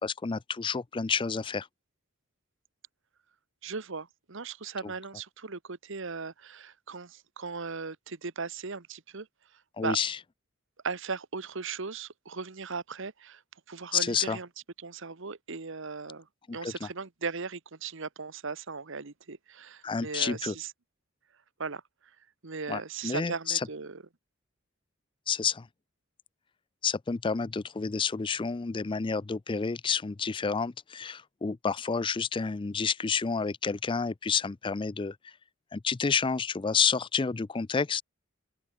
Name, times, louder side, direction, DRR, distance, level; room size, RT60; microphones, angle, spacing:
voice 1, 0.0-1.7 4.8-4.9 9.8-10.2 13.9-14.4 16.5-16.9 19.8-20.5 22.7-23.7 25.3-25.7 26.8-35.3 35.7-38.0, left 5 dB, 25° left, 0.4 m, -30 dB
voice 2, 3.6-9.3 9.8-10.0 10.8-13.4 13.7-14.5 14.8-16.3 16.5-20.7 21.6-21.8 22.4-24.0, right 4 dB, 65° right, 1.2 m, -37 dB
open air
head